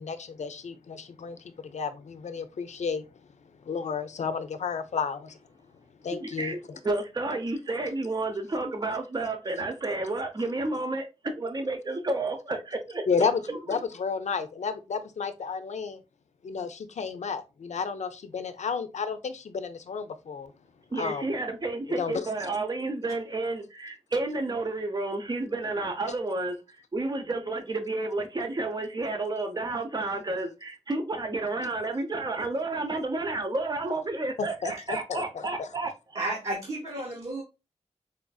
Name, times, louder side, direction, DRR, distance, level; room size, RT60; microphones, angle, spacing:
voice 1, 0.0-3.0 3.7-5.3 6.0-6.6 13.1-13.4 13.7-16.0 16.4-20.5 21.0-21.3 22.0-22.3 34.4-35.7, left 5 dB, 75° left, 0.4 m, -32 dB
voice 2, 6.2-11.1 11.3-13.1 13.5-13.6 20.9-26.6 26.9-35.9, right 2 dB, 35° right, 0.7 m, -31 dB
voice 3, 36.1-37.4, right 2 dB, 55° right, 1.0 m, -32 dB
4.3 x 2.5 x 2.3 m
wide cardioid pair, 75°, 12 cm